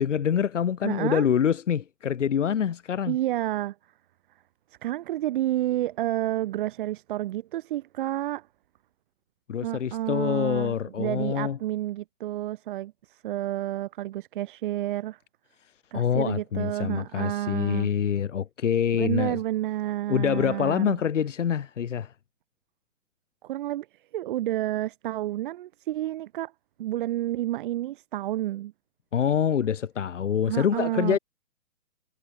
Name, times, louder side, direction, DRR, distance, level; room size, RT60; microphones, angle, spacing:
voice 1, 0.0-3.2 9.5-11.6 15.9-19.4 20.1-22.1 29.1-31.2, left 8 dB, 55° left, 4.0 m, -25 dB
voice 2, 0.8-1.2 3.1-3.7 4.8-8.5 9.6-15.2 15.9-17.9 19.0-21.0 23.4-23.9 24.1-26.5 26.8-28.7 30.5-31.2, right 14 dB, 35° right, 1.3 m, -30 dB
figure-of-eight pair, 125°, 42 cm